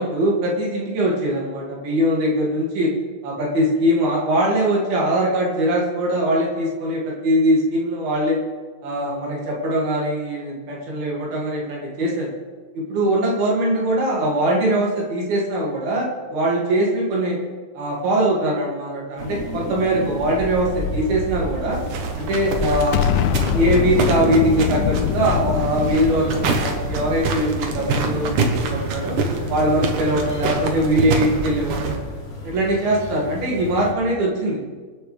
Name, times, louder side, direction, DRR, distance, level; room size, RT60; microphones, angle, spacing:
voice 1, 0.0-2.9 3.2-8.4 8.8-12.3 12.7-17.4 17.7-21.8 22.2-23.1 23.5-29.2 29.5-32.0 32.4-34.6, right 1 dB, 80° right, -3 dB, 4.6 m, -21 dB
sound 1, 19.2-33.9, equal, 65° left, 0.7 m, -33 dB
sound 2, 21.7-32.0, right 4 dB, 65° right, 2.6 m, -26 dB
Explosion, 22.9-28.1, left 9 dB, 85° left, 1.9 m, -24 dB
26.5 x 9.5 x 3.5 m, 1.5 s
omnidirectional pair, 4.2 m